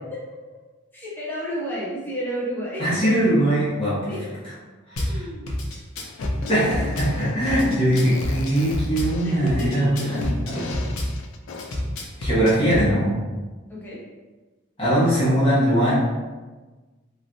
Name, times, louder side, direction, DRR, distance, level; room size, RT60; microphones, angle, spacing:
voice 1, 0.9-2.9 4.1-4.2 5.0-5.5 8.0-8.5 9.2-10.1 10.7-10.9 13.7-14.0, equal, 10° left, -7 dB, 0.6 m, -32 dB
voice 2, 2.8-4.1 4.9-5.3 6.5-10.7 12.2-13.1 14.8-15.9, equal, 25° left, -11 dB, 1.2 m, -21 dB
Drum kit / Bass drum, 5.0-5.1 5.5-7.1 7.5-9.1 9.5-11.1 11.6-12.9, left 1 dB, 85° left, 0.7 m, -28 dB
Fart, 6.1-11.9, left 3 dB, 60° left, 0.3 m, -37 dB
3.2 x 3.0 x 2.6 m, 1.3 s
head